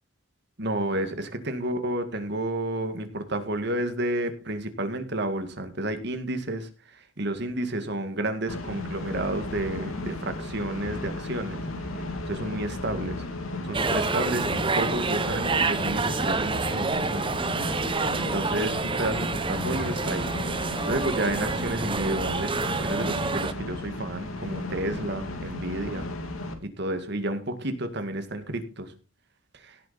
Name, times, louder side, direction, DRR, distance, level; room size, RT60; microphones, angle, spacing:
voice 1, 0.6-6.7 7.2-11.6 12.3-13.2 13.7-17.3 17.9-20.3 20.8-26.1 26.6-28.9 29.6-29.7, right 1 dB, 55° right, 8 dB, 2.0 m, -31 dB
sound 1, 8.5-26.5, left 2 dB, 90° left, 2.6 m, -35 dB
sound 2, 13.7-23.5, right 4 dB, 25° right, 0.8 m, -28 dB
16.5 x 6.9 x 4.3 m, 0.34 s
head